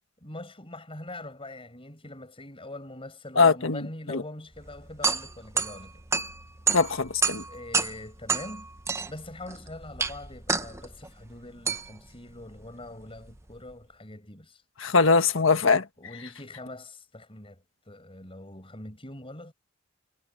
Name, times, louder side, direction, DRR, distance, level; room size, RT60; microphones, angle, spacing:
voice 1, 0.2-6.0 7.5-8.7 9.1-14.6 15.4-15.5 16.0-19.5, left 1 dB, 25° left, 7.6 m, -43 dB
voice 2, 3.4-3.8 4.1-4.2 6.7-7.4 14.8-15.8, left 4 dB, 75° left, 1.6 m, -21 dB
sound 1, 4.5-13.7, right 4 dB, 15° right, 0.8 m, -31 dB
head